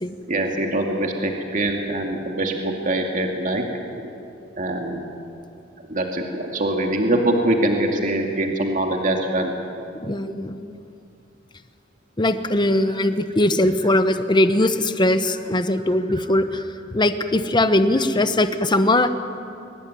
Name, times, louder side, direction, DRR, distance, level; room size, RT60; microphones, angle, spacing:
voice 1, 0.3-3.6 4.0-4.1 4.6-5.1 5.9-9.5, right 1 dB, 40° right, 2 dB, 2.3 m, -23 dB
voice 2, 9.9-10.7 12.2-16.6 16.9-19.1, left 1 dB, 25° left, 9 dB, 1.0 m, -20 dB
22.0 x 19.5 x 9.5 m, 2.6 s
head